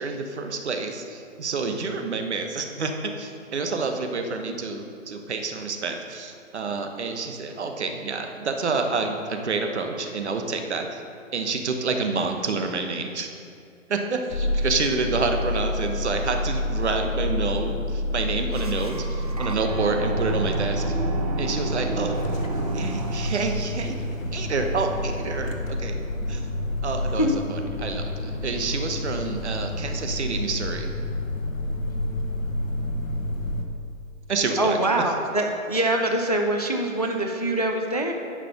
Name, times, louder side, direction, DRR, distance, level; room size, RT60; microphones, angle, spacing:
voice 1, 0.0-11.0 11.3-13.3 13.9-19.1 19.4-20.8 21.4-22.2 22.7-24.0 24.3-26.0 26.3-26.5 26.8-30.9 34.3-34.8, right 4 dB, 55° right, 5 dB, 1.0 m, -28 dB
sound 1, 14.3-33.6, left 1 dB, 75° left, 1.3 m, -29 dB
sound 2, 18.5-23.5, right 2 dB, 30° right, 0.5 m, -32 dB
voice 2, 34.6-38.1, right 1 dB, 30° left, 3 dB, 0.4 m, -24 dB
10.5 x 5.0 x 5.8 m, 2.4 s
hypercardioid pair, 165°, 40 cm